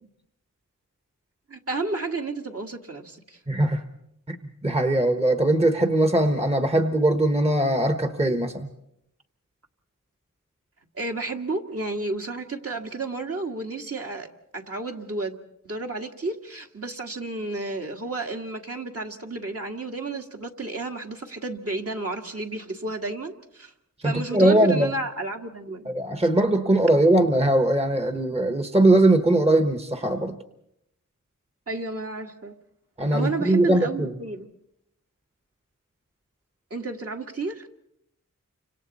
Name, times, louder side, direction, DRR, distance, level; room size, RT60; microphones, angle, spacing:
voice 1, 1.5-3.4 10.9-14.3 14.5-15.4 15.6-23.7 24.0-25.9 31.7-32.5 33.1-34.5 36.7-37.7, right 3 dB, 45° right, 2 dB, 2.0 m, -32 dB
voice 2, 3.5-3.8 4.3-4.4 4.6-8.7 24.0-24.9 25.9-30.4 33.0-34.1, right 1 dB, 20° right, 6 dB, 1.3 m, -20 dB
30.0 x 26.0 x 4.2 m, 0.78 s
wide cardioid pair, 90°, 32 cm